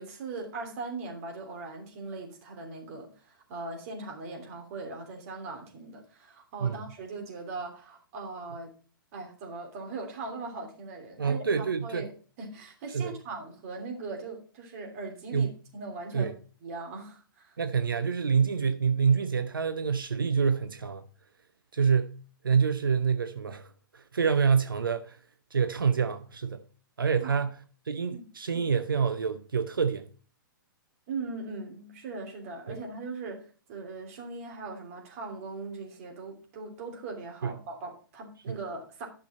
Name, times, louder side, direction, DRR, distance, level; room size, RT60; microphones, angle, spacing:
voice 1, 0.0-8.7 9.1-12.1 12.4-16.3 16.6-17.6 27.2-27.4 28.1-28.2 31.1-39.1, right 3 dB, 40° right, 3.0 m, -40 dB
voice 2, 11.2-12.1 12.9-13.1 15.3-15.6 16.1-16.3 17.6-21.0 21.7-22.2 22.4-23.7 23.9-25.2 25.5-26.6 27.0-27.5 27.9-30.0 32.7-32.8 37.4-37.5 38.5-38.6, right 6 dB, 70° right, 0.8 m, -27 dB
11.0 x 6.2 x 4.2 m
figure-of-eight pair, 115°, 12 cm